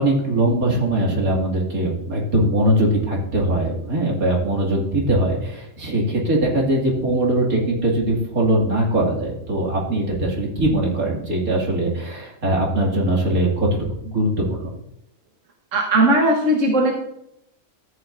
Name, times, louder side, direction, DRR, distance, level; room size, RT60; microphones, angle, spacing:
voice 1, 0.0-13.7 14.0-14.7, right 1 dB, 85° right, -2 dB, 2.9 m, -21 dB
voice 2, 15.7-16.9, right 1 dB, 65° right, 0 dB, 1.6 m, -17 dB
13.5 x 8.6 x 2.6 m, 0.80 s
omnidirectional pair, 1.5 m